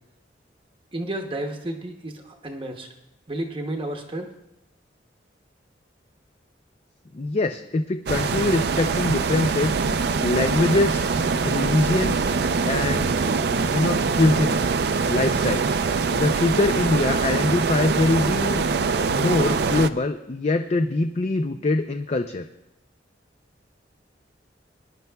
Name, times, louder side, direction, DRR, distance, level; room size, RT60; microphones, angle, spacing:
voice 1, 0.9-2.9 3.3-4.3, right 1 dB, 30° right, 4 dB, 0.8 m, -31 dB
voice 2, 7.1-9.7 10.2-11.1 11.4-12.3 12.6-13.2 13.7-14.7 15.1-15.8 16.1-18.6 19.1-22.5, left 2 dB, 35° left, 7 dB, 0.4 m, -23 dB
sound 1, 8.1-19.9, right 4 dB, 60° right, 0.4 m, -23 dB
20.5 x 10.5 x 2.3 m, 0.91 s
head